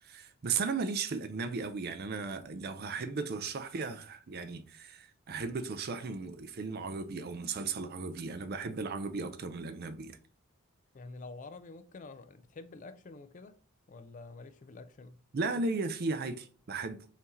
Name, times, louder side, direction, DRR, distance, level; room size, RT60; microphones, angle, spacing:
voice 1, 0.0-10.2 15.3-17.1, right 4 dB, 45° right, 0.5 m, -36 dB
voice 2, 10.9-13.6 13.9-15.2, left 3 dB, 35° left, 0.4 m, -48 dB
5.6 x 2.8 x 3.0 m
head